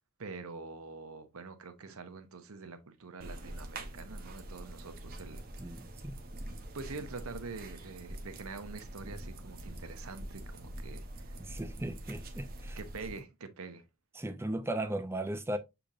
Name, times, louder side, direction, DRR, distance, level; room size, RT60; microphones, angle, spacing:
voice 1, 0.2-5.8 6.7-11.4 12.8-13.8, right 4 dB, 80° right, 0.8 m, -45 dB
sound 1, 3.2-13.2, right 1 dB, 40° right, 0.8 m, -45 dB
voice 2, 5.6-6.2 11.4-12.8 14.2-15.6, right 1 dB, 10° right, 0.4 m, -37 dB
6.8 x 2.9 x 2.5 m
head